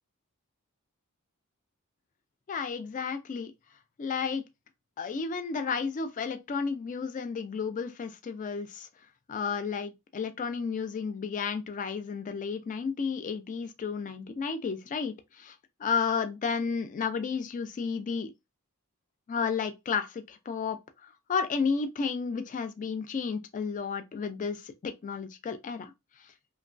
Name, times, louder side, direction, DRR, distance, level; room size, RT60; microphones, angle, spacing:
voice 1, 2.5-3.5 4.0-4.4 5.0-8.9 9.3-15.5 15.8-18.3 19.3-25.9, left 5 dB, 35° left, 0.3 m, -32 dB
3.0 x 2.2 x 2.4 m
head